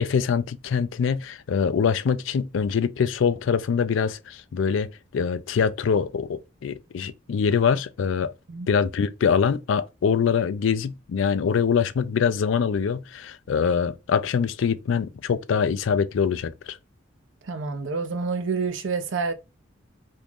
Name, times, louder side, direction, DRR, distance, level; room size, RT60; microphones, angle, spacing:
voice 1, 0.0-8.3 8.7-16.8, left 6 dB, 75° left, 0.4 m, -24 dB
voice 2, 17.4-19.3, right 4 dB, 70° right, 0.6 m, -28 dB
2.9 x 2.5 x 3.5 m
head